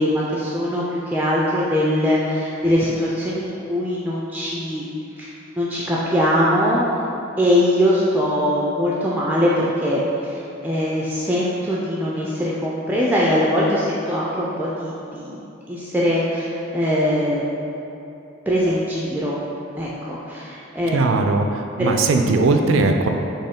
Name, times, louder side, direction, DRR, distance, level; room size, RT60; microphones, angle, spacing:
voice 1, 0.0-4.9 5.2-6.8 7.4-15.4 15.7-17.4 18.5-19.4 19.8-21.0 21.8-21.9, equal, 10° right, -6 dB, 0.3 m, -21 dB
voice 2, 20.9-23.1, right 3 dB, 80° right, 5 dB, 0.4 m, -19 dB
4.4 x 3.0 x 3.6 m, 2.9 s
head